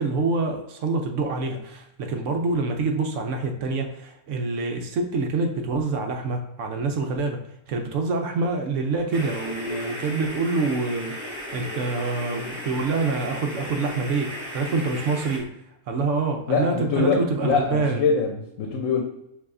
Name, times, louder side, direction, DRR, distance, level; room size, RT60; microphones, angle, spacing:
voice 1, 0.0-15.6 15.9-18.1, right 3 dB, 70° right, 0.9 m, -26 dB
sound 1, 9.1-15.4, equal, 25° right, 1.7 m, -35 dB
voice 2, 16.5-19.0, left 5 dB, 70° left, 1.0 m, -23 dB
6.8 x 2.7 x 2.5 m
omnidirectional pair, 1.4 m